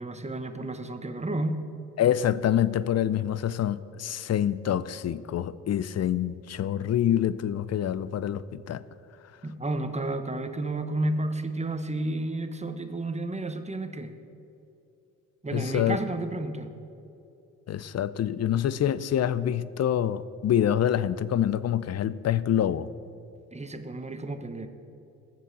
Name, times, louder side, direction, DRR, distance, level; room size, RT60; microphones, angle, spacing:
voice 1, 0.0-1.6 9.4-14.1 15.4-16.7 23.5-24.7, right 2 dB, 15° right, 1.2 m, -31 dB
voice 2, 2.0-8.8 15.5-16.0 17.7-22.9, left 10 dB, 40° left, 0.6 m, -26 dB
19.0 x 7.6 x 4.1 m
hypercardioid pair, 50°, 39 cm